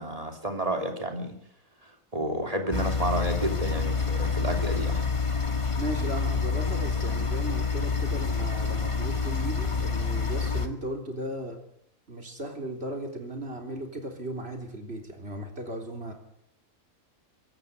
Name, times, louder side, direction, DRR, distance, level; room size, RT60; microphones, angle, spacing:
voice 1, 0.0-1.4 2.1-5.0, right 1 dB, 25° right, 4 dB, 3.2 m, -30 dB
sound 1, 2.7-10.7, left 5 dB, 25° left, 1.7 m, -28 dB
voice 2, 5.8-11.6 12.1-16.1, right 1 dB, 50° right, 3 dB, 4.0 m, -36 dB
23.5 x 13.5 x 8.3 m, 0.70 s
omnidirectional pair, 1.4 m